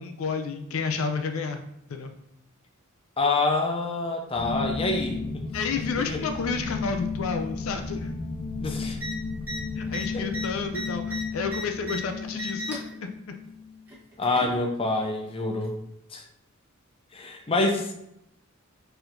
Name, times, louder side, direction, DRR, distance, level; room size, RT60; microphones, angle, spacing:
voice 1, 0.0-1.6 1.9-2.1 5.5-8.1 9.8-13.4, left 5 dB, 80° left, 6 dB, 0.5 m, -31 dB
voice 2, 3.2-5.4 6.0-6.2 8.6-9.0 10.1-10.3 14.2-15.7 16.1-16.2 17.1-17.9, left 2 dB, 25° left, 3 dB, 0.6 m, -26 dB
sound 1, 4.3-13.8, left 4 dB, 55° left, 0.8 m, -34 dB
sound 2, 8.9-9.1 9.4-9.6 9.9-12.0 12.3-12.9 13.9-14.6 15.6-15.7, right 1 dB, 10° right, 1.1 m, -35 dB
4.4 x 4.3 x 2.6 m, 0.78 s
head